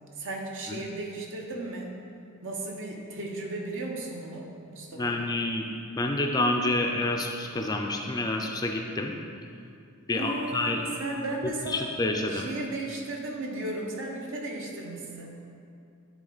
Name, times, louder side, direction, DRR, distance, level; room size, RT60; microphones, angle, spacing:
voice 1, 0.2-2.0 2.4-5.2 10.1-11.9 12.3-15.4, right 2 dB, 60° right, 0 dB, 1.0 m, -35 dB
voice 2, 4.9-5.7 6.0-9.1 10.1-10.8 11.7-12.5, left 2 dB, 15° left, 2 dB, 0.4 m, -28 dB
10.0 x 3.7 x 4.0 m, 2.5 s
head